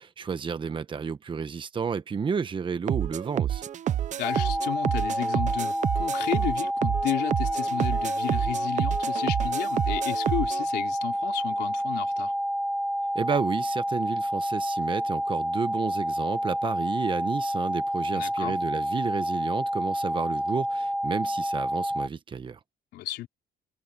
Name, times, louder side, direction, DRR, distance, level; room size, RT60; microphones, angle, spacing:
voice 1, 0.0-3.6 13.1-22.6, right 6 dB, 30° right, 1.1 m, -31 dB
sound 1, 2.9-10.6, right 10 dB, 45° right, 0.7 m, -29 dB
voice 2, 4.2-12.3 18.1-18.6 22.9-23.3, left 15 dB, 80° left, 3.3 m, -33 dB
sound 2, 4.2-22.1, equal, ahead, 0.7 m, -29 dB
cardioid pair, 110°, 17 cm